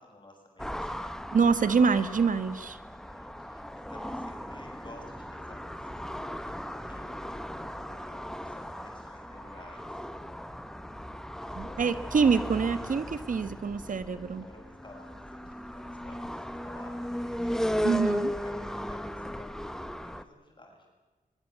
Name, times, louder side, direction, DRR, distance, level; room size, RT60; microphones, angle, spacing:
voice 1, 0.0-1.2 2.7-10.0 11.4-11.8 13.8-17.8 18.3-19.6 19.8-20.9, left 1 dB, 35° left, 1 dB, 7.6 m, -54 dB
sound 1, 0.6-20.2, equal, 5° left, 1.2 m, -37 dB
voice 2, 1.3-2.8 11.6-14.4 17.8-18.3, right 5 dB, 65° right, 12 dB, 1.3 m, -25 dB
22.5 x 22.5 x 8.1 m, 1.2 s
wide cardioid pair, 125°, 15 cm